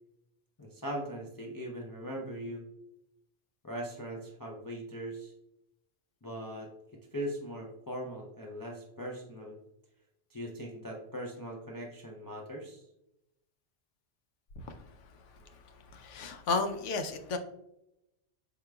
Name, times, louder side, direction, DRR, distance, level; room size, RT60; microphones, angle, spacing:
voice 1, 0.6-2.7 3.6-5.3 6.2-6.7 7.1-9.6 10.3-12.9, equal, 30° left, -2 dB, 0.4 m, -40 dB
voice 2, 15.9-17.4, left 4 dB, 85° left, 7 dB, 1.0 m, -32 dB
4.9 x 4.7 x 2.2 m, 0.85 s
omnidirectional pair, 1.2 m